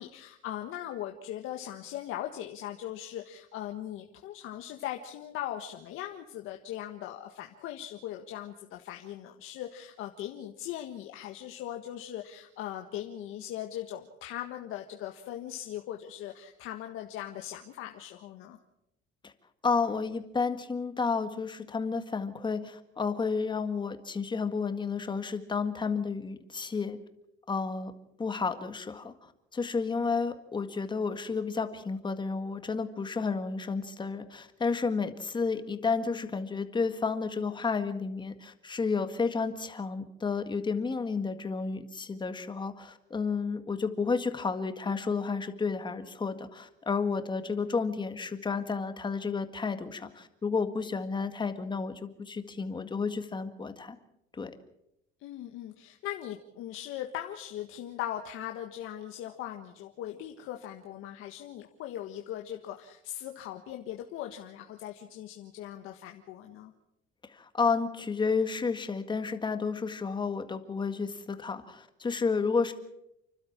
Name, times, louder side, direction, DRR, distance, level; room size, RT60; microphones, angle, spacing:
voice 1, 0.0-18.6 55.2-66.7, left 12 dB, 75° left, 3 dB, 1.6 m, -39 dB
voice 2, 19.6-27.0 27.5-27.9 28.2-54.0 54.3-54.5 67.3-72.7, left 4 dB, 20° left, 8 dB, 1.8 m, -31 dB
30.0 x 12.5 x 7.4 m, 0.82 s
cardioid pair, 130°, 21 cm